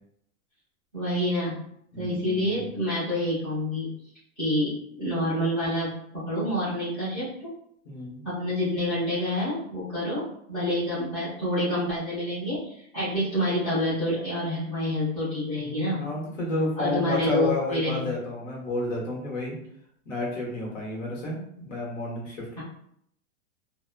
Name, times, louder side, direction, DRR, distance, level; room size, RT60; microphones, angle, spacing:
voice 1, 0.9-1.6 2.0-3.9 4.4-7.3 8.2-10.2 10.5-16.0 16.8-18.1, left 1 dB, 5° left, -14 dB, 0.5 m, -27 dB
voice 2, 1.9-2.8 7.8-8.2 15.6-19.5 20.0-22.6, left 2 dB, 60° left, -2 dB, 1.2 m, -31 dB
2.8 x 2.1 x 2.2 m, 0.70 s
hypercardioid pair, 180°, 42 cm